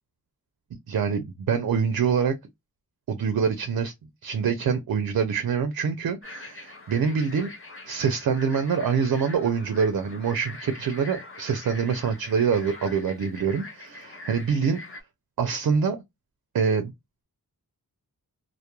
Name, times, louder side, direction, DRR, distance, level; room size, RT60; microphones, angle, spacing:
voice 1, 0.9-2.3 3.1-3.9 4.2-7.5 7.9-14.8 15.4-16.0 16.5-16.9, right 6 dB, 60° right, 0.4 m, -25 dB
sound 1, 6.2-15.0, left 2 dB, 35° left, 0.5 m, -43 dB
2.2 x 2.1 x 2.9 m
wide cardioid pair, 70°, 38 cm